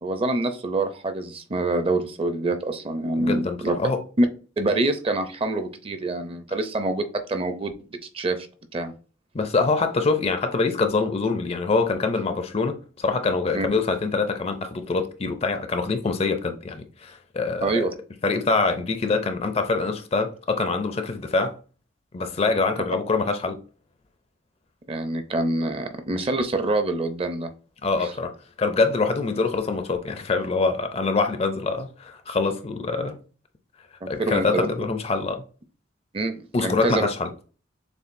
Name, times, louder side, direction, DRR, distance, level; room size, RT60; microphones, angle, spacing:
voice 1, 0.0-3.8 4.2-4.3 4.6-7.7 8.1-8.5 8.7-8.9 13.5-13.7 17.6-17.9 24.9-27.5 28.0-28.1 34.0-34.7 36.1-37.1, right 2 dB, 30° right, 0.5 m, -26 dB
voice 2, 3.2-4.0 9.3-17.8 18.2-21.6 22.1-23.6 27.8-33.2 34.1-35.4 36.5-37.3, left 3 dB, 30° left, 0.4 m, -24 dB
6.8 x 2.3 x 2.5 m
head